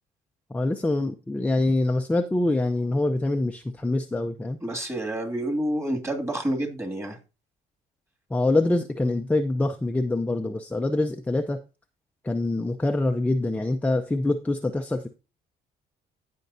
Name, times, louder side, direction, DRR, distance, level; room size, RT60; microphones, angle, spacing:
voice 1, 0.5-4.6 8.3-11.6 12.2-15.1, left 2 dB, 10° left, 0.6 m, -25 dB
voice 2, 4.6-7.2, right 1 dB, 15° right, 2.3 m, -28 dB
16.0 x 5.3 x 2.7 m
cardioid pair, 110°, 17 cm